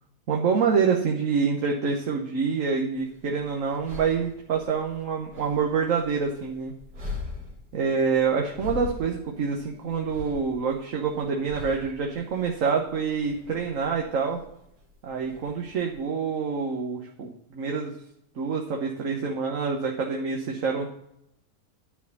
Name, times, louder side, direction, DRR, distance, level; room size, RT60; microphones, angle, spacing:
voice 1, 0.3-6.7 7.7-14.4 15.0-18.0 18.3-20.9, right 5 dB, 55° right, 0 dB, 1.3 m, -26 dB
sound 1, 3.0-16.0, left 3 dB, 80° right, 2.7 m, -42 dB
11.0 x 4.5 x 6.9 m, 0.77 s
omnidirectional pair, 1.7 m